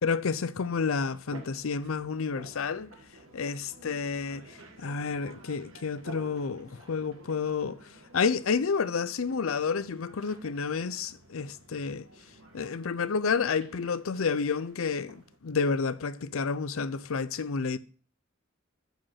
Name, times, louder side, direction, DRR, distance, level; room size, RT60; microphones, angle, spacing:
voice 1, 0.0-2.9 3.3-4.4 4.8-7.8 8.1-12.0 12.5-15.2 15.4-17.8, left 5 dB, 85° left, 0.6 m, -30 dB
sound 1, 0.6-15.4, right 2 dB, 85° right, 1.8 m, -52 dB
9.1 x 5.2 x 5.6 m
head